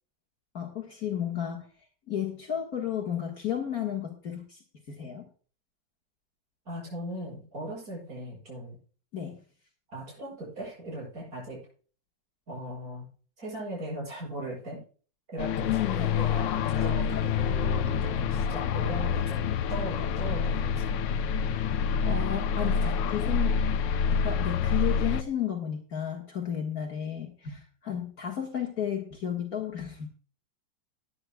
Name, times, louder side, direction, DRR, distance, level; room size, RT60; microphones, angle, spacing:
voice 1, 0.5-1.7 2.1-4.6 4.9-5.3 9.1-9.4 15.6-16.2 21.8-23.6 24.2-30.1, left 9 dB, 55° left, 1 dB, 2.0 m, -33 dB
voice 2, 6.7-8.8 9.9-11.6 12.5-13.1 13.4-14.8 15.3-21.0 22.6-23.0, right 1 dB, 50° right, -4 dB, 7.9 m, -38 dB
sound 1, 15.4-25.2, left 6 dB, 80° left, 1.4 m, -27 dB
19.5 x 9.8 x 2.3 m, 0.40 s
omnidirectional pair, 2.0 m